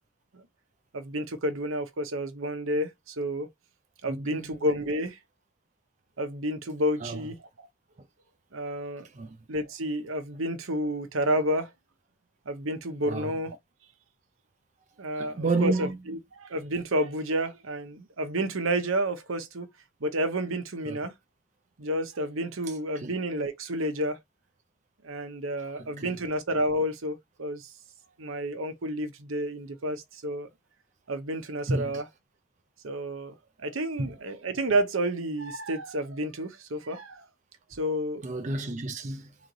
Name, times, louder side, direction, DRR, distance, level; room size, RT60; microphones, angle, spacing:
voice 1, 0.9-3.5 4.0-5.2 6.2-7.7 8.5-9.1 9.5-11.7 12.5-13.6 15.0-19.7 20.0-21.1 21.8-24.2 25.0-27.7 28.2-30.5 31.1-32.1 32.8-37.3 37.7-38.3, right 1 dB, 75° right, 0.9 m, -30 dB
voice 2, 4.1-4.5 7.0-7.2 9.1-9.4 13.1-13.3 15.1-15.9 20.9-21.0 23.0-23.1 26.0-26.1 31.7-31.9 34.0-34.1 38.2-39.3, right 3 dB, 35° right, 0.5 m, -30 dB
3.8 x 3.2 x 3.8 m
head